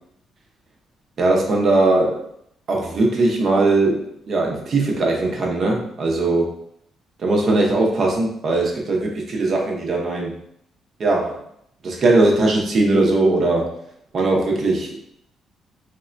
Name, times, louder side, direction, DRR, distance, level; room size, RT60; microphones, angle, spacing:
voice 1, 1.2-2.2 2.7-6.5 7.2-10.3 11.0-11.4 11.8-13.7 14.1-15.0, right 2 dB, 55° right, 0 dB, 0.7 m, -19 dB
3.5 x 2.1 x 2.5 m, 0.72 s
cardioid pair, 90°, 0 cm